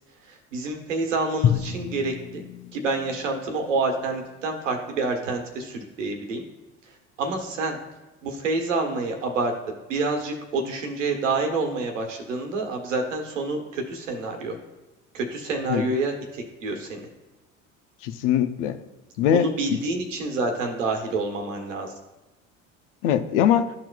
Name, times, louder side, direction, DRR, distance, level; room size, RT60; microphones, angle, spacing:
voice 1, 0.2-2.4 2.7-6.4 6.8-7.8 8.2-9.5 9.9-14.6 15.1-17.1 19.3-21.9, right 3 dB, 85° right, 1.3 m, -28 dB
Drum, 1.4-4.4, left 9 dB, 35° left, 0.5 m, -29 dB
voice 2, 18.0-18.8 19.2-19.8 23.0-23.7, left 9 dB, 70° left, 0.7 m, -22 dB
12.5 x 4.4 x 2.3 m
hypercardioid pair, 70°, 37 cm